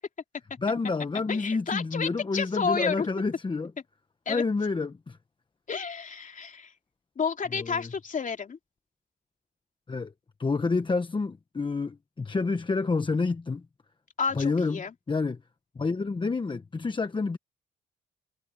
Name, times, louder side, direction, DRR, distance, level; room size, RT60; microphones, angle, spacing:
voice 1, 0.6-3.7 4.3-5.2 7.5-7.9 9.9-10.1 10.4-13.6 14.3-15.4 15.7-17.4, left 4 dB, 25° left, 1.2 m, -28 dB
voice 2, 1.3-3.1 4.2-4.4 5.7-6.7 7.2-8.6 14.2-14.9, left 5 dB, 40° left, 3.3 m, -31 dB
cardioid pair, 90°, 20 cm